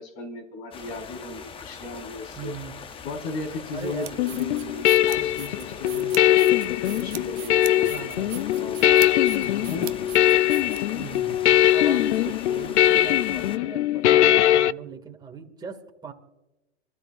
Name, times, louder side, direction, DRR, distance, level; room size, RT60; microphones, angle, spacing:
voice 1, 0.0-2.5 3.0-6.6 7.0-8.9 9.7-10.0, left 3 dB, 65° left, 2 dB, 4.2 m, -36 dB
sound 1, 0.7-13.6, left 6 dB, 15° left, 0.6 m, -42 dB
voice 2, 2.4-2.8 3.7-4.1 5.1-5.4 5.9-6.3 7.9-8.4 9.4-10.1 10.9-16.1, right 6 dB, 10° right, 2 dB, 2.0 m, -40 dB
sound 2, 3.8-11.2, right 20 dB, 40° right, 0.5 m, -41 dB
sound 3, 4.2-14.7, left 13 dB, 80° left, 0.5 m, -21 dB
27.0 x 14.5 x 2.5 m, 0.99 s
hypercardioid pair, 125°, 35 cm